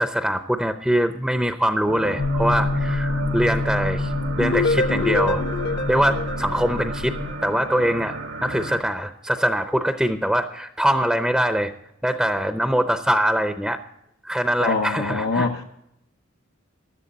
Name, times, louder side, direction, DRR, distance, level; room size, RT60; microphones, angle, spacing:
voice 1, 0.0-4.1 4.4-5.4 5.9-7.2 7.4-11.7 12.0-13.8 14.2-15.5, equal, ahead, 0.7 m, -23 dB
sound 1, 1.9-8.8, right 3 dB, 70° right, 1.3 m, -33 dB
sound 2, 2.2-7.3, left 2 dB, 35° left, 0.4 m, -27 dB
sound 3, 4.4-7.3, left 3 dB, 55° left, 1.0 m, -26 dB
voice 2, 14.6-15.6, left 3 dB, 85° left, 0.9 m, -24 dB
16.0 x 11.5 x 4.1 m
head